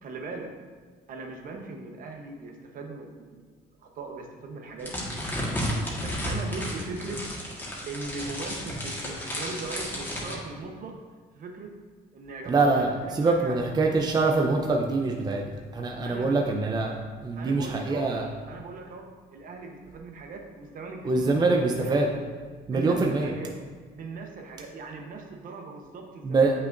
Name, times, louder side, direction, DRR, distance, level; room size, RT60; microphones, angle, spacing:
voice 1, 0.0-0.5 1.1-3.4 3.8-5.1 6.0-7.2 7.9-10.9 11.4-11.7 12.1-13.7 16.0-16.4 17.4-18.1 18.5-19.0 19.3-22.2 22.7-23.5 23.9-26.5, right 3 dB, 55° right, 3 dB, 1.0 m, -39 dB
sound 1, 4.8-10.3, equal, 10° left, 1.6 m, -33 dB
voice 2, 12.5-15.4 15.7-17.0 17.2-18.3 21.0-22.1 22.7-23.3 26.2-26.5, right 3 dB, 25° right, 1 dB, 0.6 m, -24 dB
8.1 x 5.7 x 2.6 m, 1.5 s
cardioid pair, 110°, 17 cm